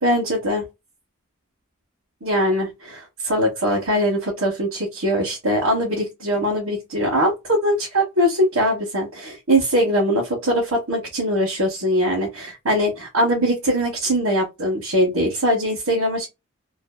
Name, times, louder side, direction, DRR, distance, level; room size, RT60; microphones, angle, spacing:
voice 1, 0.0-0.6 2.2-16.3, equal, 90° right, 1.0 m, -21 dB
2.5 x 2.4 x 2.3 m
head